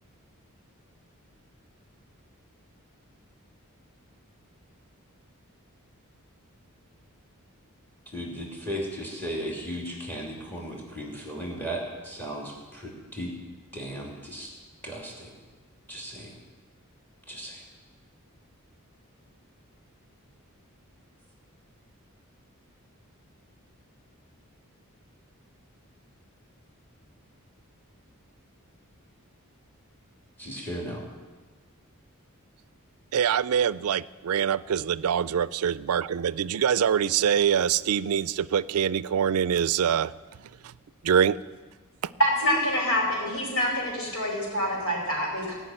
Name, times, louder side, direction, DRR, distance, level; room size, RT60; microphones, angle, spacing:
voice 1, 8.1-13.3 13.7-14.5 14.8-15.3 15.9-16.3 17.3-17.5 30.4-31.0, equal, 10° left, -1 dB, 2.8 m, -36 dB
voice 2, 33.1-40.1 41.0-41.4, right 8 dB, 90° right, 19 dB, 0.4 m, -24 dB
voice 3, 42.2-45.5, equal, 80° left, -2 dB, 4.9 m, -26 dB
17.0 x 6.1 x 9.0 m, 1.3 s
head